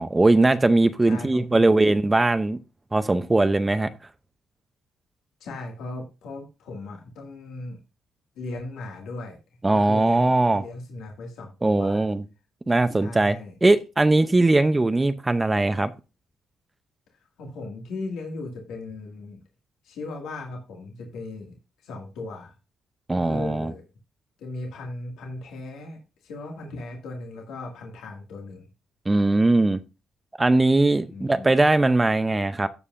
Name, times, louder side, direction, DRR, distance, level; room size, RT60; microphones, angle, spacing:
voice 1, 0.0-2.6 2.9-3.9 9.6-10.6 11.6-12.2 12.7-13.4 13.6-15.9 23.1-23.7 29.1-29.8 30.4-32.7, right 2 dB, 20° right, 0.6 m, -20 dB
voice 2, 1.1-1.7 5.4-7.8 8.4-9.4 9.7-12.1 13.0-13.5 17.4-19.4 19.8-22.5 23.1-23.8 24.4-28.7 31.1-31.5, left 2 dB, 80° left, 2.1 m, -37 dB
15.0 x 5.4 x 2.6 m
cardioid pair, 90°, 0 cm